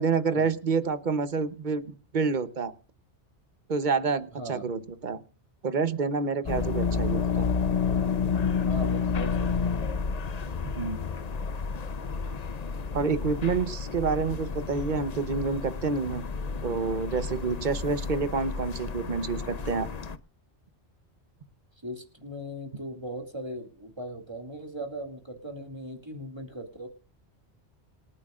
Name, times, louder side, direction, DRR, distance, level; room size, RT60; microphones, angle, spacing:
voice 1, 0.0-1.8 2.1-2.7 3.7-5.2 5.6-7.5 10.6-11.0 12.9-16.2 16.6-19.9, right 4 dB, 45° right, 13 dB, 1.1 m, -28 dB
sound 1, 6.5-20.2, left 5 dB, 40° left, 0.7 m, -30 dB
voice 2, 8.6-9.8 21.8-26.9, equal, 25° right, 4 dB, 2.4 m, -39 dB
26.5 x 9.8 x 2.5 m, 0.34 s
omnidirectional pair, 1.2 m